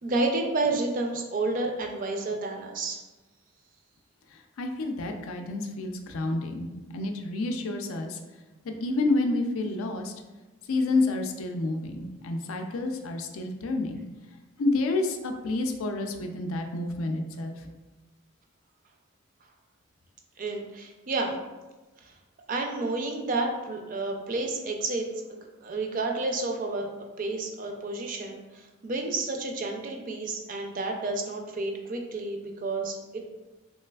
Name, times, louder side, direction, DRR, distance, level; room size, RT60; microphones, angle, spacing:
voice 1, 0.0-3.0 20.4-21.4 22.0-22.1 22.5-26.9 27.2-33.2, right 2 dB, 40° right, 3 dB, 0.4 m, -30 dB
voice 2, 4.3-8.2 8.6-10.1 10.7-14.0 14.6-17.7, left 2 dB, 80° left, 5 dB, 0.4 m, -29 dB
3.2 x 3.1 x 2.2 m, 1.2 s
head